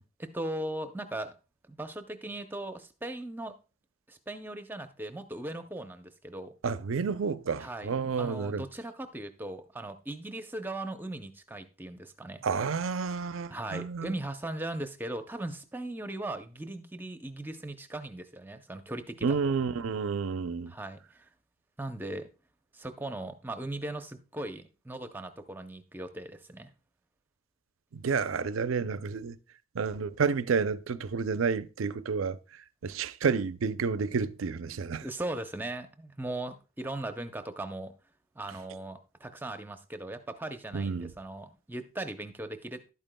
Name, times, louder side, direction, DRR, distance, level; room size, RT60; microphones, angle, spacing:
voice 1, 0.2-1.3 1.7-3.5 4.1-6.5 7.6-12.4 13.5-19.4 20.7-21.3 21.8-22.3 22.7-26.7 35.0-37.9 38.4-42.9, right 1 dB, 10° right, 0.6 m, -38 dB
voice 2, 6.6-8.6 12.4-14.1 19.2-20.7 27.9-29.4 29.7-32.4 32.8-35.1 40.7-41.1, right 5 dB, 85° right, 0.5 m, -30 dB
11.5 x 8.9 x 2.2 m
head